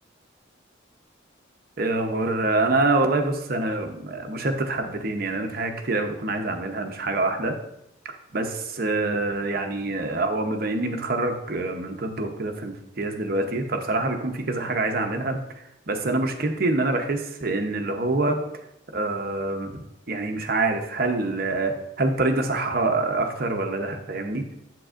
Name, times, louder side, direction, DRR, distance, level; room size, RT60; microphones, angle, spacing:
voice 1, 1.8-7.6 8.3-15.4 15.9-18.4 18.9-24.4, right 2 dB, 50° right, 5 dB, 0.8 m, -26 dB
7.6 x 7.6 x 2.5 m, 0.80 s
head